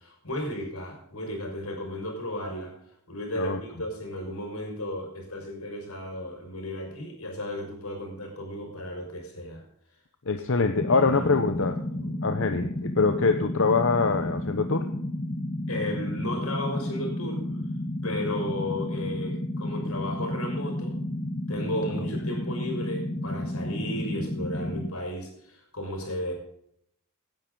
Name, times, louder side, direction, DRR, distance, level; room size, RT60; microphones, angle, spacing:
voice 1, 0.0-2.7 3.1-9.6 10.3-11.3 11.9-12.1 15.7-17.4 18.0-21.0 21.5-26.3, left 1 dB, 90° left, 2 dB, 5.9 m, -34 dB
voice 2, 10.3-11.8 12.2-14.8, left 4 dB, 65° left, 7 dB, 0.9 m, -24 dB
sound 1, 10.7-24.9, left 1 dB, 35° left, 1.2 m, -32 dB
18.0 x 10.5 x 3.9 m, 0.71 s
head